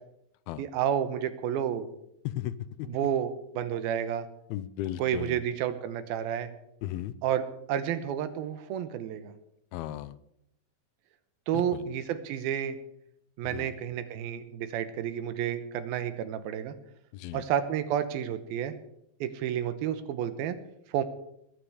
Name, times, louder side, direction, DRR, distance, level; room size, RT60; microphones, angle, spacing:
voice 1, 0.6-1.9 2.9-4.3 5.0-6.5 7.2-9.3 11.5-12.8 13.4-16.7 17.3-18.7 19.2-20.6 20.9-21.0, right 9 dB, 80° right, 11 dB, 2.8 m, -30 dB
voice 2, 2.2-2.9 4.5-5.4 6.8-7.2 9.7-10.2 11.5-11.9 13.4-13.8 17.1-17.4, left 13 dB, 90° left, 16 dB, 2.6 m, -36 dB
21.0 x 9.5 x 4.9 m, 0.79 s
omnidirectional pair, 4.3 m